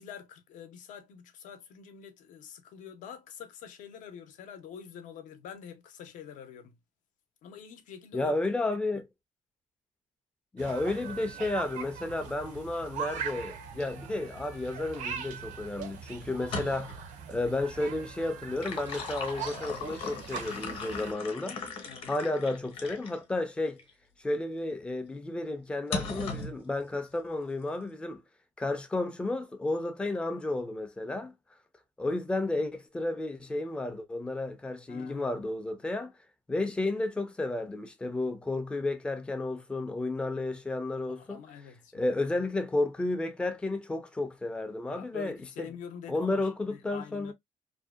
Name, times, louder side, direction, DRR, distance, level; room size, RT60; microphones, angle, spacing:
voice 1, 0.0-6.8 7.4-8.3 16.5-16.6 21.9-22.1 34.9-35.3 41.2-42.1 44.9-47.3, left 8 dB, 75° left, 0.6 m, -46 dB
voice 2, 8.1-9.1 10.5-21.6 22.1-23.8 24.2-28.2 28.6-31.3 32.0-36.1 36.5-41.4 41.9-45.7 46.1-47.3, left 2 dB, 10° left, 0.3 m, -32 dB
sound 1, 10.6-21.1, right 7 dB, 70° right, 0.5 m, -41 dB
sound 2, 16.4-17.1 18.3-23.2 23.8-23.9 25.9-26.6, left 4 dB, 45° left, 0.8 m, -38 dB
2.6 x 2.1 x 2.3 m
cardioid pair, 165°, 13 cm